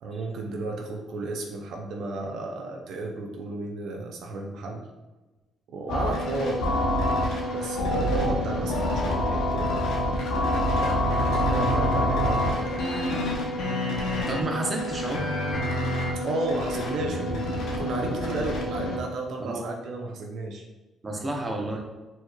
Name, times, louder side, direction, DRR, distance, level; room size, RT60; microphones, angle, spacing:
voice 1, 0.0-4.9 5.7-6.8 7.5-9.9 11.3-12.7 16.2-20.6, right 2 dB, 75° right, 1 dB, 0.5 m, -33 dB
sound 1, 5.9-19.0, left 1 dB, 85° left, 0.6 m, -26 dB
voice 2, 14.3-15.2 18.2-18.4 19.4-19.6 21.0-21.8, right 2 dB, 25° right, 1 dB, 0.7 m, -30 dB
4.5 x 2.9 x 2.2 m, 1.1 s
cardioid pair, 90°, 0 cm